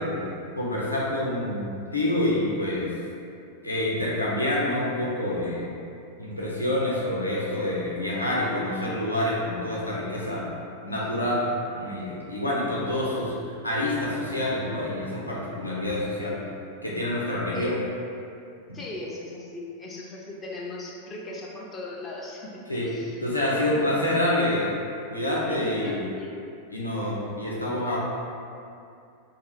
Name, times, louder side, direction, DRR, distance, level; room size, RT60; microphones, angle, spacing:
voice 1, 0.0-2.9 3.6-5.7 6.2-10.5 10.8-11.5 11.7-13.3 13.6-16.4 16.8-17.8 22.7-22.9 23.2-24.7 25.1-26.1 26.7-28.0, left 1 dB, 85° left, -6 dB, 0.4 m, -27 dB
voice 2, 18.7-22.6 22.9-23.2 23.5-24.1 25.4-26.4, left 2 dB, 20° left, -3 dB, 0.4 m, -37 dB
2.4 x 2.3 x 3.1 m, 2.5 s
figure-of-eight pair, 90°, 0 cm